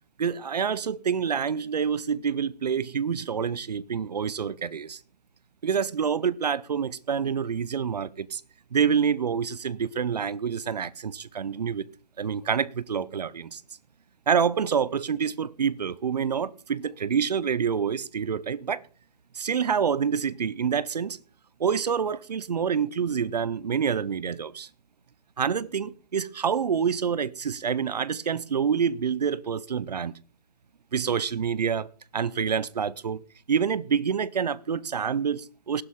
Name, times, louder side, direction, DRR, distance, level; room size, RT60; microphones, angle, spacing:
voice 1, 0.2-5.0 5.6-8.4 8.7-11.9 12.2-13.6 14.3-18.8 19.3-21.2 21.6-24.7 25.4-30.1 30.9-31.9 32.1-33.2 33.5-35.8, right 7 dB, 75° right, 0.8 m, -27 dB
18.5 x 11.5 x 3.7 m
hypercardioid pair, 160°, 21 cm